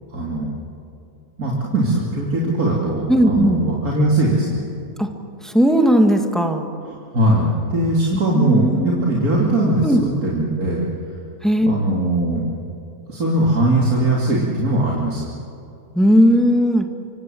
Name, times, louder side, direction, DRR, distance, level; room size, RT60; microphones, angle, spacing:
voice 1, 0.1-0.5 1.4-4.6 6.8-10.8 11.6-12.5 13.1-15.2, right 1 dB, 75° right, -4 dB, 3.4 m, -20 dB
voice 2, 3.1-3.6 5.0-5.1 5.4-6.7 8.1-9.1 9.8-10.0 11.4-11.7 15.9-16.9, equal, ahead, 4 dB, 1.9 m, -17 dB
26.0 x 24.5 x 7.9 m, 2.7 s
omnidirectional pair, 1.6 m